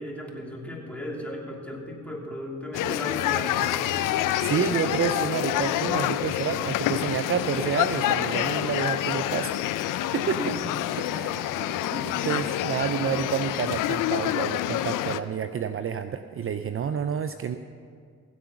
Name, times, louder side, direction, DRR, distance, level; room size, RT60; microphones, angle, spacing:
voice 1, 0.0-3.9 10.3-10.7 11.1-11.3 11.6-12.1, equal, 5° left, -2 dB, 3.0 m, -36 dB
sound 1, 2.7-15.2, left 13 dB, 80° left, 0.5 m, -27 dB
voice 2, 4.2-9.5 10.1-10.5 11.1-11.3 12.2-17.6, right 7 dB, 45° right, 10 dB, 0.5 m, -29 dB
16.0 x 7.7 x 5.9 m, 2.2 s
supercardioid pair, 55°, 31 cm